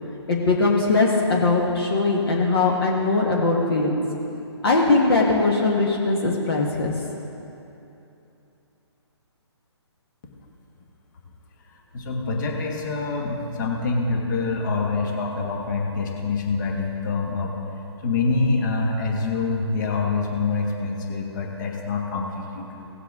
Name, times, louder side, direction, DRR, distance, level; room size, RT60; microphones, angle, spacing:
voice 1, 0.3-4.0 4.6-6.9, left 3 dB, 55° left, -1 dB, 1.3 m, -20 dB
voice 2, 11.9-17.6 18.0-22.9, left 3 dB, 40° left, 1 dB, 1.5 m, -25 dB
17.0 x 7.5 x 3.6 m, 3.0 s
figure-of-eight pair, 140°, 15 cm